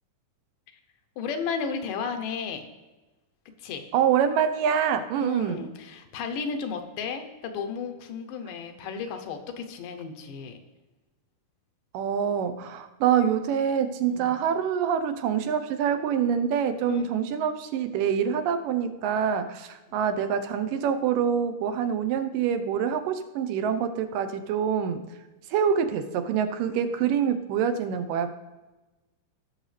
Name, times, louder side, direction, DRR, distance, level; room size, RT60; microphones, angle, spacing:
voice 1, 1.2-2.6 3.6-3.8 5.2-10.6 14.1-14.4 16.9-17.0 19.9-20.0, left 5 dB, 80° left, 6 dB, 2.5 m, -33 dB
voice 2, 3.9-5.7 11.9-25.0 25.5-28.3, right 8 dB, 85° right, 9 dB, 2.4 m, -26 dB
17.5 x 6.4 x 3.3 m, 1.1 s
omnidirectional pair, 3.7 m